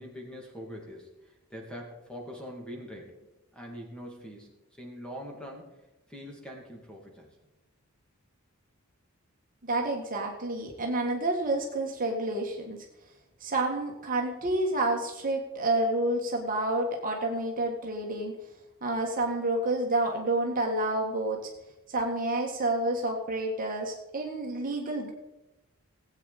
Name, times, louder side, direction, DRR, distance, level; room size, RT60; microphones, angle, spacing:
voice 1, 0.0-3.2 3.5-4.5 4.8-5.8 6.1-7.3, equal, 5° left, -1 dB, 2.4 m, -43 dB
voice 2, 9.6-12.8 13.4-18.3 18.8-21.5 21.9-25.1, right 2 dB, 40° right, 1 dB, 1.5 m, -29 dB
18.0 x 8.5 x 4.1 m, 0.99 s
head